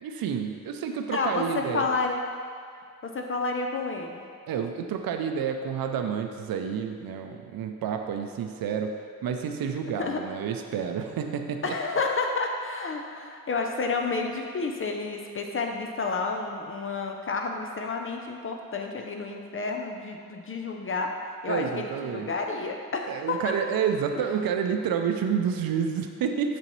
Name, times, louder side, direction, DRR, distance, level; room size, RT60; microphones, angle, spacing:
voice 1, 0.0-1.9 4.5-11.7 21.5-22.3 23.1-26.6, right 7 dB, 80° right, 5 dB, 0.5 m, -29 dB
voice 2, 1.1-2.2 3.0-4.2 10.0-10.2 11.6-21.1 21.4-23.5 24.2-24.3, left 3 dB, 40° left, 2 dB, 0.4 m, -30 dB
6.8 x 6.7 x 3.0 m, 2.2 s
wide cardioid pair, 175°, 35 cm